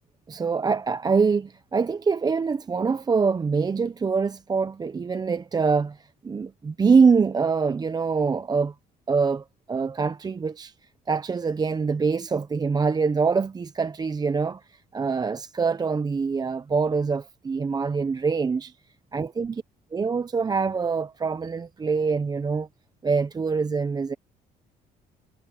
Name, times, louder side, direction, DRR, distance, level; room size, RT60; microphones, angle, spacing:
voice 1, 0.3-8.7 9.1-10.7 11.1-18.7 19.1-19.6 19.9-22.7 23.0-24.1, right 5 dB, 25° right, 0.7 m, -24 dB
cardioid pair, 110°, 17 cm